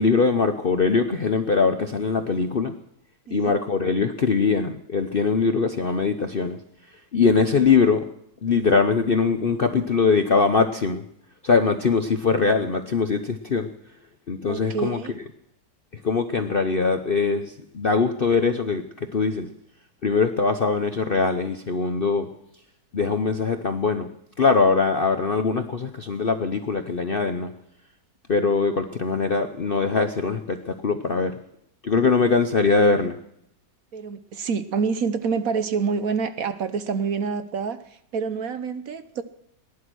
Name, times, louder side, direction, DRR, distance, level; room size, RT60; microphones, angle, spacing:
voice 1, 0.0-2.7 3.3-6.6 7.1-8.0 8.4-11.0 11.4-13.7 14.3-15.0 15.9-19.5 20.0-22.3 22.9-24.1 24.4-27.5 28.3-31.3 31.8-33.2, left 4 dB, 45° left, 0.7 m, -22 dB
voice 2, 14.5-15.1 33.9-39.2, right 5 dB, 60° right, 1.2 m, -27 dB
19.0 x 11.0 x 6.2 m
omnidirectional pair, 1.9 m